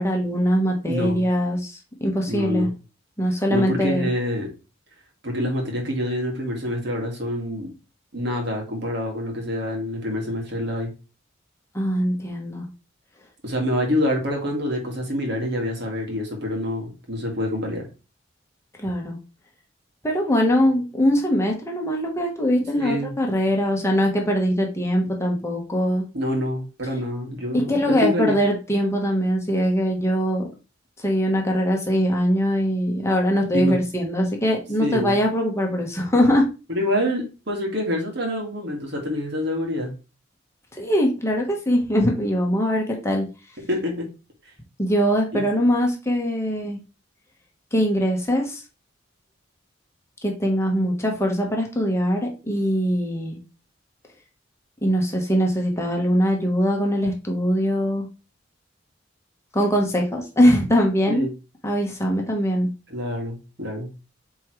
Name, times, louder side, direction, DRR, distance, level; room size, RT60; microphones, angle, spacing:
voice 1, 0.0-2.7 3.2-4.1 11.7-12.7 18.8-19.2 20.0-26.0 27.5-30.5 31.0-36.4 40.7-43.3 44.8-46.8 47.7-48.6 50.2-53.4 54.8-58.1 59.5-61.3 61.6-62.7, equal, 15° left, 0 dB, 1.3 m, -22 dB
voice 2, 0.9-1.3 2.3-2.7 3.5-4.5 5.2-7.7 8.1-10.9 13.4-17.9 22.8-23.1 26.1-28.4 33.5-33.8 34.8-35.2 36.7-39.9 43.7-44.0 45.3-45.4 61.1-61.3 62.9-63.9, left 1 dB, 60° right, 1 dB, 2.1 m, -26 dB
8.2 x 3.8 x 3.2 m, 0.31 s
head